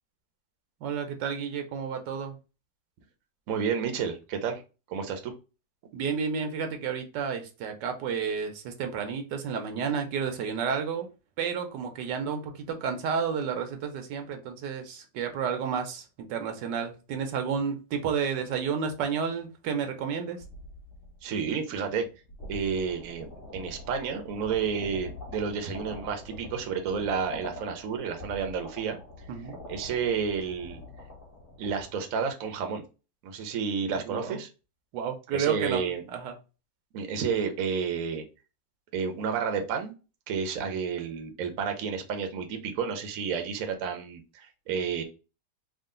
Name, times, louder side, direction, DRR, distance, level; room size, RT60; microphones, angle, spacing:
voice 1, 0.8-2.4 5.9-11.1 11.4-20.4 29.3-29.6 34.0-34.4 34.9-35.8 36.1-36.3, right 6 dB, 80° right, 6 dB, 1.3 m, -31 dB
voice 2, 3.5-4.6 4.9-5.3 21.2-22.1 22.5-29.0 29.7-30.8 31.6-32.8 33.2-34.5 35.3-36.0 36.9-38.2 38.9-39.9 40.3-45.0, right 6 dB, 60° right, 5 dB, 1.0 m, -31 dB
sound 1, 20.4-21.5 22.0-31.9, left 1 dB, 30° left, 1.8 m, -44 dB
3.7 x 2.4 x 3.7 m, 0.31 s
omnidirectional pair, 1.9 m